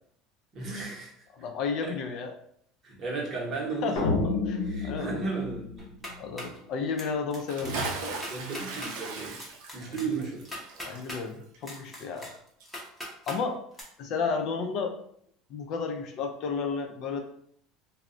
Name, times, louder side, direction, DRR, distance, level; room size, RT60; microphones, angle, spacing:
voice 1, 0.5-1.2 1.8-1.9 2.8-4.1 4.6-6.0 8.3-9.4 9.7-10.5, right 4 dB, 30° right, -2 dB, 0.8 m, -34 dB
voice 2, 1.3-2.3 3.8-4.1 4.5-5.2 6.2-7.8 10.8-12.3 13.3-13.6 14.0-15.0 15.5-17.2, left 5 dB, 45° left, 5 dB, 0.4 m, -32 dB
sound 1, 4.0-6.4, left 3 dB, 90° left, 0.6 m, -30 dB
sound 2, 5.8-6.6 7.0-7.4 7.6-7.7 8.1-8.9 9.4-11.2 11.6-13.4 13.7-13.8, left 1 dB, 5° left, 0.6 m, -40 dB
Bathtub (filling or washing) / Splash splatter, 7.4-12.3 12.6-12.7, right 3 dB, 70° right, 0.5 m, -37 dB
2.2 x 2.0 x 3.6 m, 0.66 s
cardioid pair, 160°, 0 cm